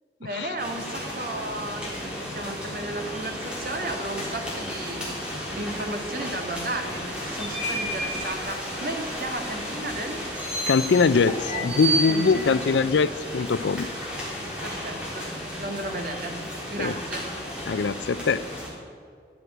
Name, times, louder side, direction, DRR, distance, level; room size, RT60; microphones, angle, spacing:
voice 1, 0.2-5.1 5.5-10.2 11.4-12.7 13.0-13.1 14.6-17.4, right 2 dB, 50° right, 1.7 m, -34 dB
sound 1, 0.6-18.7, equal, 5° right, 3.4 m, -33 dB
voice 2, 10.7-13.9 16.8-16.9 17.7-18.5, left 5 dB, 80° left, 0.4 m, -22 dB
12.5 x 8.3 x 9.9 m
head